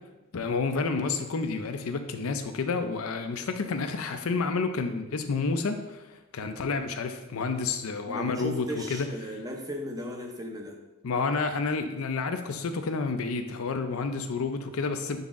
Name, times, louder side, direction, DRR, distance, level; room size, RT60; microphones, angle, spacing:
voice 1, 0.3-9.1 11.0-15.2, left 4 dB, 85° left, 7 dB, 0.5 m, -30 dB
voice 2, 8.1-10.8, equal, 15° right, 2 dB, 0.6 m, -36 dB
6.9 x 4.0 x 3.6 m, 1.1 s
head